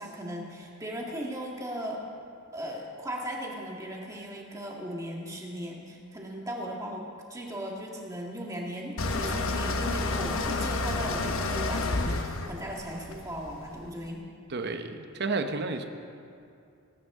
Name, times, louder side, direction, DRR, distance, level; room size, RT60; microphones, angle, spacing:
voice 1, 0.0-2.0 2.5-14.3, equal, 15° right, -2 dB, 1.7 m, -37 dB
sound 1, 9.0-13.9, left 2 dB, 65° left, 0.9 m, -30 dB
voice 2, 14.5-15.8, right 3 dB, 50° right, 7 dB, 0.9 m, -31 dB
20.0 x 11.5 x 3.7 m, 2.5 s
head